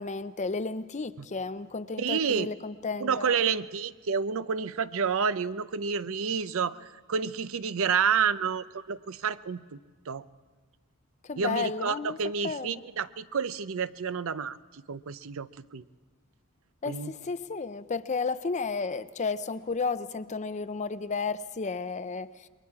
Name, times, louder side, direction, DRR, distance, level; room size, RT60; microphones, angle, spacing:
voice 1, 0.0-3.4 11.2-12.2 12.4-12.8 16.8-22.5, left 4 dB, 30° left, 0.6 m, -33 dB
voice 2, 2.0-2.5 3.0-6.8 7.1-9.8 10.1-10.3 11.4-15.8 16.9-17.1, right 6 dB, 65° right, 0.6 m, -29 dB
28.0 x 22.0 x 4.7 m
head